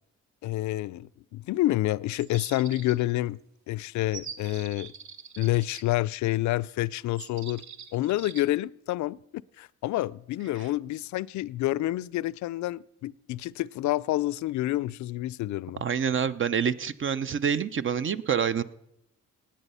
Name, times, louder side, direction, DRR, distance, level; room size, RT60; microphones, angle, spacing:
voice 1, 0.4-3.4 3.7-4.9 5.4-7.6 7.9-9.2 9.6-15.8, left 16 dB, 70° left, 0.5 m, -28 dB
sound 1, 2.2-3.2 4.1-5.8 7.2-8.4, right 6 dB, 65° right, 1.3 m, -43 dB
voice 2, 15.8-18.6, right 7 dB, 40° right, 0.6 m, -27 dB
18.0 x 9.0 x 5.5 m
cardioid pair, 90°, 30 cm